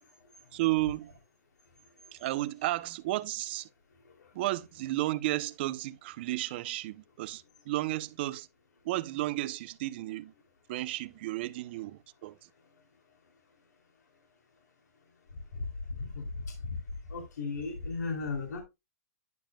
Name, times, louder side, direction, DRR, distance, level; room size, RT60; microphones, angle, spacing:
voice 1, 0.5-1.1 2.1-3.7 4.3-8.5 8.8-10.3 10.7-12.5, right 17 dB, 40° right, 0.7 m, -33 dB
voice 2, 17.1-18.6, left 4 dB, 85° left, 2.9 m, -35 dB
10.5 x 7.1 x 2.3 m
hypercardioid pair, 165°, 9 cm